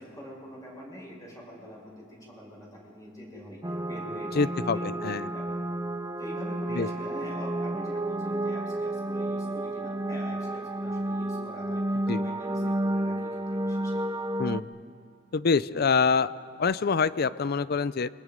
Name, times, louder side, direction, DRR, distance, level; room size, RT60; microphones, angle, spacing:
voice 1, 0.0-5.6 6.2-14.0, equal, 20° left, -3 dB, 6.2 m, -43 dB
sound 1, 3.6-14.6, right 1 dB, 20° right, 0.7 m, -31 dB
voice 2, 4.4-4.8 5.0-5.2 6.7-6.9 12.1-12.2 14.4-14.7 15.3-16.3 16.6-18.1, left 5 dB, 50° left, 17 dB, 0.5 m, -25 dB
29.0 x 23.0 x 5.2 m, 2.2 s
head